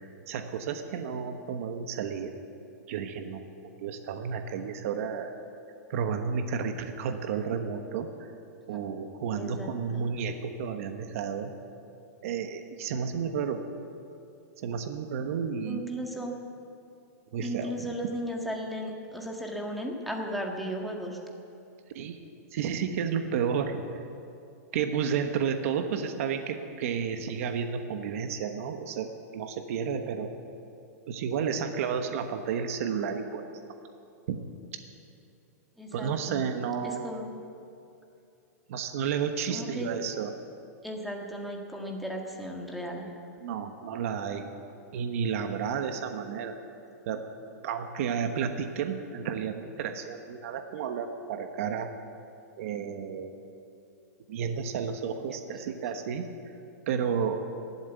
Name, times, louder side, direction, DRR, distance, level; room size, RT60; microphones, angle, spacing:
voice 1, 0.0-2.3 2.9-3.5 3.8-5.4 5.9-8.3 8.7-11.5 12.2-13.6 14.6-15.8 17.3-17.7 21.9-22.2 22.5-23.8 24.7-30.3 31.1-33.5 34.3-34.4 35.9-37.1 38.7-40.3 43.4-44.5 44.9-46.6 47.1-47.2 47.6-51.9 52.6-53.4 54.3-56.3 56.9-57.4, right 7 dB, 55° right, 6 dB, 1.2 m, -32 dB
voice 2, 9.3-10.1 15.7-16.3 17.4-21.2 35.8-36.4 36.8-37.4 39.5-39.9 40.8-43.1 55.3-55.4, equal, ahead, 0 dB, 1.6 m, -36 dB
15.0 x 12.0 x 8.2 m, 2.6 s
supercardioid pair, 155°, 9 cm